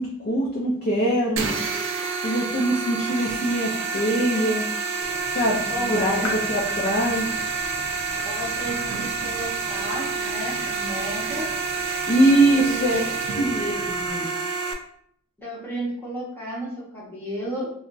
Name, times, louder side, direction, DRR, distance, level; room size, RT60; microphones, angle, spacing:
voice 1, 0.0-1.5 2.2-4.7 5.3-7.5 12.1-14.3, right 1 dB, 45° left, -3 dB, 0.4 m, -23 dB
sound 1, 1.4-14.7, right 4 dB, 60° right, 0.4 m, -28 dB
Clock, 5.0-14.1, equal, 30° right, 0.9 m, -46 dB
voice 2, 5.7-6.4 8.2-11.5 12.5-13.5 15.4-17.7, right 1 dB, 10° left, -6 dB, 0.7 m, -33 dB
sound 2, 5.9-9.9, left 2 dB, 90° left, 0.8 m, -39 dB
2.3 x 2.1 x 3.8 m, 0.64 s
head